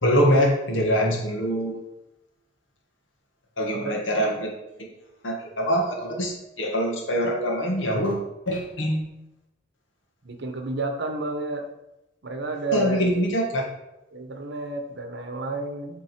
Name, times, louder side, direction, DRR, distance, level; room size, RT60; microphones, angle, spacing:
voice 1, 0.0-1.8 3.6-4.5 5.2-9.0 12.7-13.6, equal, 85° left, 1 dB, 1.6 m, -24 dB
voice 2, 10.2-11.7 12.2-13.2 14.1-16.0, right 2 dB, 65° right, 5 dB, 1.0 m, -31 dB
8.4 x 3.7 x 4.5 m, 0.91 s
head